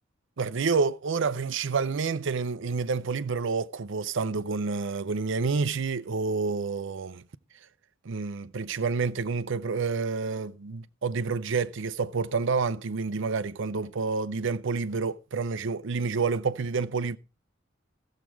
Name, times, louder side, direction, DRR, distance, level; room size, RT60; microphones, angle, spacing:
voice 1, 0.4-7.2 8.1-17.2, right 4 dB, 65° right, 0.6 m, -29 dB
14.5 x 7.4 x 4.6 m
head